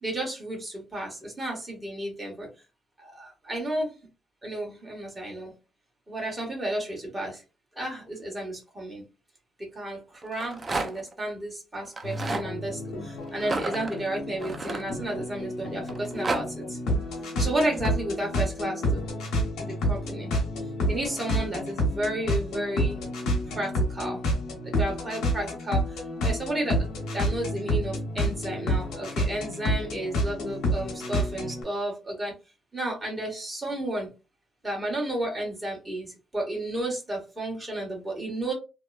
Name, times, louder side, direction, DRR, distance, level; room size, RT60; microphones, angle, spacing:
voice 1, 0.0-2.5 3.0-3.9 4.4-5.5 6.1-7.4 7.7-9.0 9.6-16.8 17.4-19.1 19.5-20.3 20.9-23.0 23.5-24.2 24.6-32.3 32.7-34.1 34.6-38.5, right 1 dB, 15° right, -1 dB, 1.5 m, -32 dB
Rattle, 10.2-11.1 11.9-12.5 13.4-15.4 15.9-16.4, right 3 dB, 30° right, 0.5 m, -31 dB
sound 1, 12.0-31.6, equal, 90° left, 1.0 m, -29 dB
2.9 x 2.1 x 2.4 m, 0.30 s
cardioid pair, 90°, 0 cm